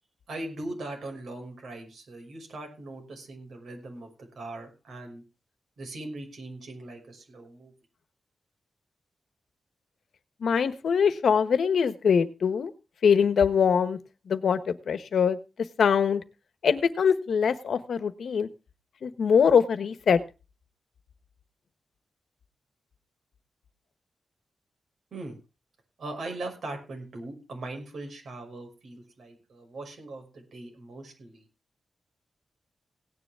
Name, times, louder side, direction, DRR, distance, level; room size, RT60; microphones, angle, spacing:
voice 1, 0.3-5.2 5.8-7.7 25.1-25.4 26.0-31.5, right 2 dB, 60° right, 3 dB, 5.9 m, -40 dB
voice 2, 10.4-12.7 13.0-14.0 14.3-15.4 15.8-16.2 16.6-18.5 19.0-20.2, left 6 dB, 75° left, 11 dB, 1.2 m, -23 dB
17.5 x 9.9 x 3.6 m, 0.30 s
wide cardioid pair, 155°, 0 cm